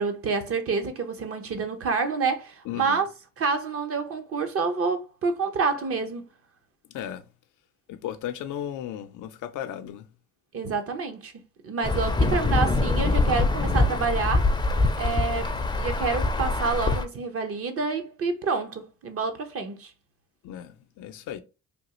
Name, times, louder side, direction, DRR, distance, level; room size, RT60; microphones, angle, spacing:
voice 1, 0.0-3.1 3.4-6.2 10.5-11.3 11.6-14.5 15.0-15.5 15.8-19.9, right 4 dB, 50° right, 0.8 m, -28 dB
voice 2, 2.7-3.0 6.9-7.2 7.9-10.1 20.4-21.4, left 10 dB, 85° left, 0.5 m, -35 dB
Insect / Thunder / Rain, 11.8-17.0, left 3 dB, 15° left, 0.5 m, -24 dB
3.4 x 2.4 x 2.9 m
cardioid pair, 90°, 30 cm